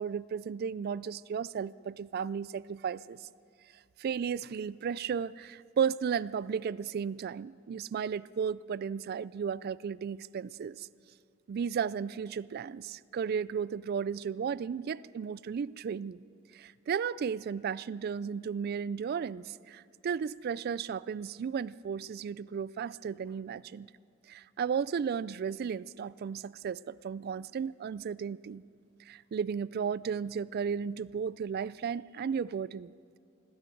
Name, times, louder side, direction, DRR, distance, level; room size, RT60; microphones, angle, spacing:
voice 1, 0.0-3.3 4.0-10.9 11.5-16.2 16.5-23.9 24.3-28.6 29.1-32.9, right 7 dB, 50° right, 20 dB, 0.3 m, -34 dB
18.5 x 16.5 x 4.6 m, 2.5 s
head